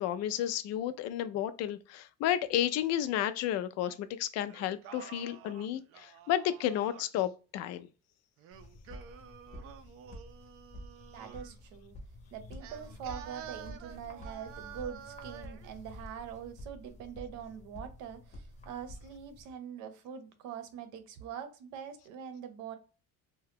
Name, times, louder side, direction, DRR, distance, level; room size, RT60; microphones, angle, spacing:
voice 1, 0.0-7.9, left 11 dB, 60° left, 0.4 m, -32 dB
Singing, 4.5-7.3 8.4-11.6 12.6-15.7, right 9 dB, 50° right, 0.4 m, -50 dB
sound 1, 8.5-19.4, left 1 dB, 25° left, 0.7 m, -49 dB
voice 2, 11.1-12.0 12.3-22.8, right 8 dB, 80° right, 0.7 m, -44 dB
2.8 x 2.2 x 3.4 m
cardioid pair, 160°, 29 cm